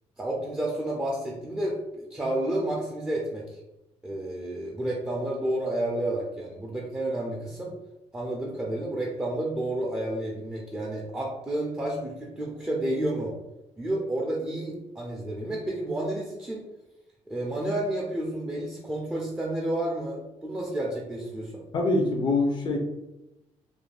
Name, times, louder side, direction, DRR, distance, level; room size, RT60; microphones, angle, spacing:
voice 1, 0.2-3.6 4.0-7.7 8.1-13.3 13.8-16.6 17.3-21.6, right 1 dB, 10° right, -3 dB, 0.5 m, -30 dB
voice 2, 21.7-22.8, left 2 dB, 40° left, 2 dB, 0.5 m, -24 dB
2.5 x 2.1 x 3.3 m, 0.95 s
cardioid pair, 105°, 12 cm